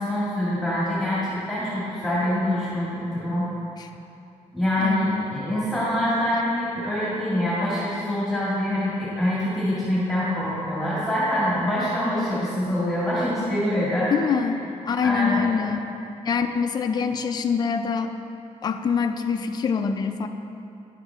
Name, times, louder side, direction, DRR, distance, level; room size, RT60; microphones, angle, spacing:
voice 1, 0.0-3.5 4.5-14.1 15.0-15.6, left 1 dB, ahead, -10 dB, 2.1 m, -25 dB
voice 2, 4.8-5.3 14.1-15.9 16.3-18.1 18.6-20.3, left 6 dB, 35° left, 6 dB, 0.4 m, -25 dB
10.0 x 7.4 x 3.5 m, 2.8 s
wide cardioid pair, 150°, 13 cm